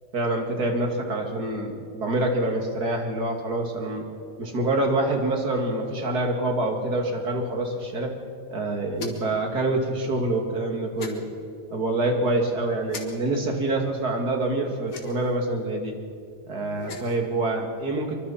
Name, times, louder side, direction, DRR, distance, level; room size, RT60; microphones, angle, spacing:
voice 1, 0.1-4.1 4.4-8.1 8.5-11.3 11.7-16.0 16.5-18.2, right 2 dB, 50° right, 2 dB, 3.0 m, -26 dB
sound 1, 8.9-9.4 11.0-11.2 12.9-13.0 14.9-15.3 16.7-17.2, left 4 dB, 85° left, 2.8 m, -37 dB
24.5 x 24.0 x 4.4 m, 2.4 s
omnidirectional pair, 2.2 m